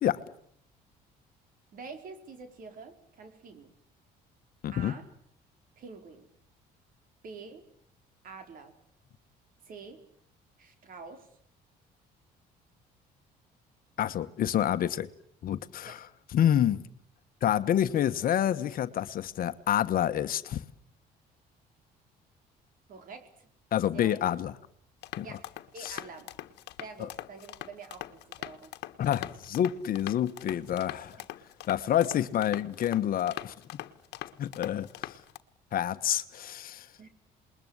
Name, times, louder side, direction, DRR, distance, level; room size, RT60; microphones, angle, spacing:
voice 1, 1.7-3.7 4.7-5.1 5.8-6.3 7.2-7.6 8.2-8.7 9.7-10.0 10.6-11.3 15.8-16.0 22.9-23.5 23.9-24.2 25.2-25.4 25.7-26.3 26.8-28.7 31.1-31.3 37.0-37.1, right 4 dB, 55° right, 4.5 m, -46 dB
voice 2, 4.6-4.9 14.0-15.1 15.4-16.1 16.3-16.8 17.4-20.6 23.7-24.5 25.2-25.3 25.8-26.0 29.0-31.2 31.7-33.5 34.4-35.2 35.7-36.9, left 10 dB, 60° left, 1.3 m, -28 dB
sound 1, 25.0-35.4, left 15 dB, 80° left, 1.4 m, -42 dB
28.0 x 21.5 x 8.1 m
cardioid pair, 110°, 17 cm